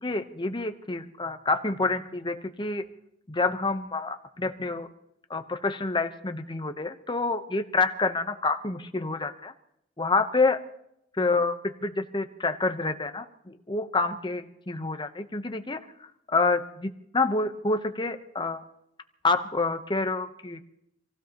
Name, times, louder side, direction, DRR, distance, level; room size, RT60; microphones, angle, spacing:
voice 1, 0.0-2.8 3.3-4.9 5.3-9.5 10.0-10.6 11.2-11.5 11.8-15.8 16.3-18.6 19.2-20.6, left 3 dB, 25° left, 8 dB, 1.0 m, -28 dB
26.5 x 16.0 x 3.0 m, 0.78 s
head